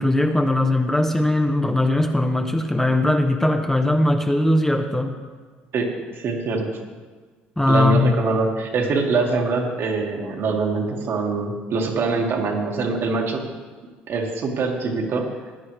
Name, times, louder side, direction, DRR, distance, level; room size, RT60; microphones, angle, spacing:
voice 1, 0.0-5.2 7.6-8.2, left 1 dB, 10° left, 5 dB, 0.9 m, -20 dB
voice 2, 6.1-6.7 7.7-13.4 14.1-15.3, right 3 dB, 55° right, 1 dB, 1.9 m, -23 dB
15.5 x 10.0 x 3.3 m, 1.4 s
hypercardioid pair, 65°, 5 cm